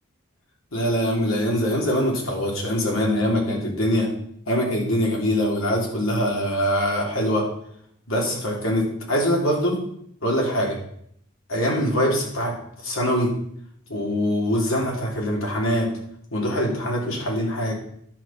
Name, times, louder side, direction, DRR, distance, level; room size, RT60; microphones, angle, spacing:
voice 1, 0.7-4.1 4.5-7.4 8.1-9.8 10.2-10.8 11.5-12.5 12.8-13.3 13.9-15.9 16.3-17.7, equal, 80° left, -1 dB, 3.3 m, -23 dB
11.0 x 6.5 x 5.8 m, 0.70 s
head